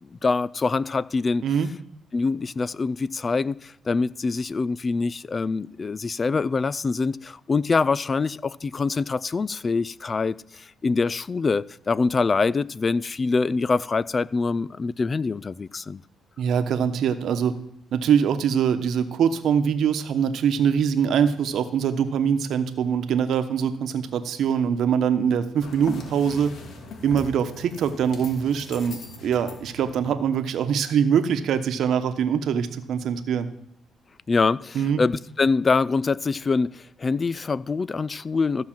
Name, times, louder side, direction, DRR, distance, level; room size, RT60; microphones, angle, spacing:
voice 1, 0.0-1.4 2.1-16.0 34.3-38.6, left 4 dB, 35° left, 0.4 m, -24 dB
voice 2, 16.4-17.5 17.9-26.5 27.0-33.5 34.7-35.0, right 7 dB, 70° right, 1.1 m, -23 dB
sound 1, 25.6-30.3, left 4 dB, 70° left, 2.6 m, -41 dB
14.5 x 5.7 x 7.5 m
cardioid pair, 90°, 0 cm